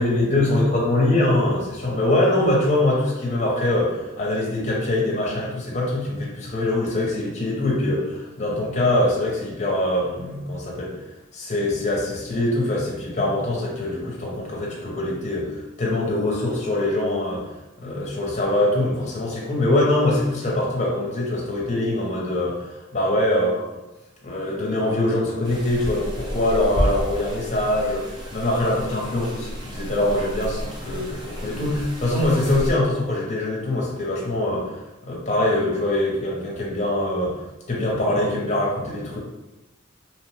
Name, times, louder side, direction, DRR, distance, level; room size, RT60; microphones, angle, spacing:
voice 1, 0.0-10.9 11.3-17.4 17.8-23.8 24.2-34.8 35.0-37.3 37.7-39.2, left 1 dB, 35° left, -3 dB, 0.6 m, -23 dB
sound 1, 25.4-32.7, equal, 20° right, 0.4 m, -31 dB
2.8 x 2.0 x 3.1 m, 1.0 s
head